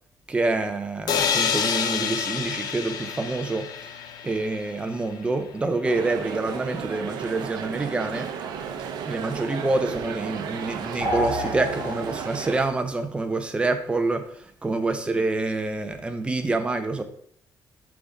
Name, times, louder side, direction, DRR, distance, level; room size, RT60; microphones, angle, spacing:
voice 1, 0.3-3.7 4.2-8.3 9.0-17.0, right 3 dB, 15° right, 7 dB, 0.6 m, -27 dB
sound 1, 1.1-4.9, left 7 dB, 65° left, 0.6 m, -27 dB
sound 2, 5.8-12.6, right 7 dB, 75° right, 0.6 m, -34 dB
sound 3, 11.0-12.5, left 1 dB, 35° right, 2.6 m, -29 dB
5.9 x 3.8 x 4.8 m, 0.64 s
cardioid pair, 155°, 7 cm